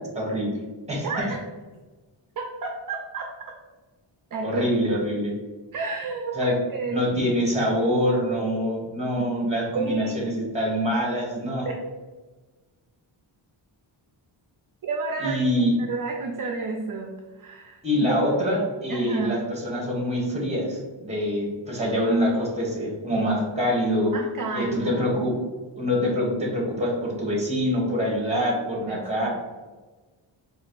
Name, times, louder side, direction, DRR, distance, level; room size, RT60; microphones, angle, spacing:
voice 1, 0.1-0.6 0.9-1.3 4.4-5.3 6.3-6.6 6.9-11.7 15.2-15.7 17.8-24.1 24.5-25.3 25.8-29.3, equal, 15° right, -2 dB, 1.1 m, -25 dB
voice 2, 1.0-1.4 2.4-3.3 4.3-4.7 5.7-7.0 9.4-9.5 9.7-10.4 11.6-11.7 14.8-15.4 15.8-18.1 18.9-19.5 24.1-25.2 28.9-29.3, right 4 dB, 45° right, 2 dB, 0.4 m, -31 dB
3.9 x 2.5 x 4.5 m, 1.3 s
wide cardioid pair, 175°, 48 cm